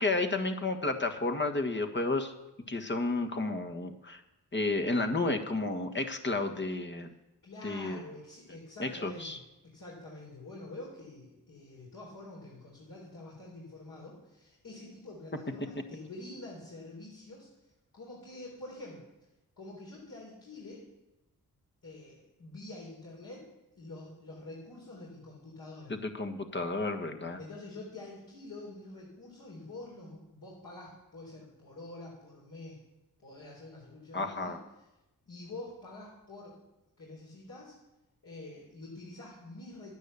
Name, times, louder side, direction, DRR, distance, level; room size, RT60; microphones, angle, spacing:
voice 1, 0.0-2.3 2.7-4.2 4.5-7.1 7.6-8.0 8.8-9.4 25.9-27.4 34.1-34.6, left 2 dB, 30° left, 5 dB, 1.6 m, -31 dB
voice 2, 7.4-19.0 19.6-20.9 21.8-23.5 23.8-25.9 27.4-32.8 33.2-34.9 35.3-36.6 37.0-37.7 38.2-39.9, left 2 dB, 55° left, -5 dB, 3.9 m, -47 dB
10.5 x 9.5 x 6.9 m, 0.97 s
supercardioid pair, 45°, 39 cm